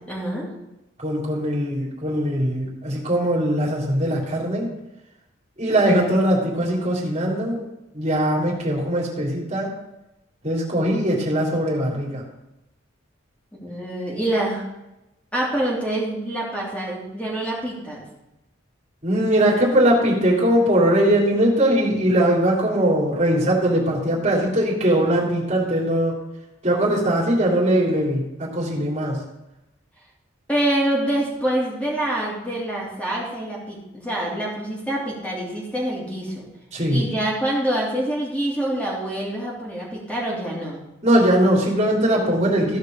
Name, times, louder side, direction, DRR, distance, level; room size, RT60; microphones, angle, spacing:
voice 1, 0.1-0.5 13.6-14.6 15.3-18.0 30.5-36.4 36.9-40.8, right 1 dB, 5° left, -5 dB, 3.2 m, -26 dB
voice 2, 1.0-4.7 5.6-7.6 7.9-9.7 10.4-12.2 19.0-26.2 26.6-29.2 36.7-37.1 41.0-42.8, right 1 dB, 35° right, -4 dB, 3.4 m, -20 dB
15.5 x 5.3 x 5.4 m, 0.93 s
head